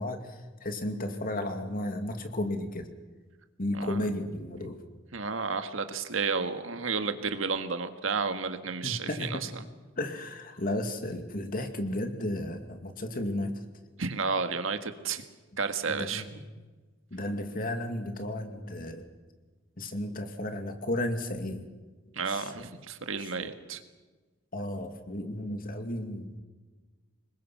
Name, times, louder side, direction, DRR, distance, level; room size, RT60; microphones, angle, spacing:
voice 1, 0.0-2.9 3.6-4.8 8.8-9.4 10.0-13.5 15.9-16.3 17.1-19.0 19.8-21.6 22.3-22.6 23.2-23.5 24.5-26.4, left 1 dB, 45° left, 6 dB, 2.3 m, -33 dB
voice 2, 5.1-9.4 14.0-15.2 15.6-16.4 22.1-23.8, right 4 dB, 80° right, 8 dB, 1.7 m, -32 dB
26.0 x 21.0 x 6.0 m, 1.3 s
head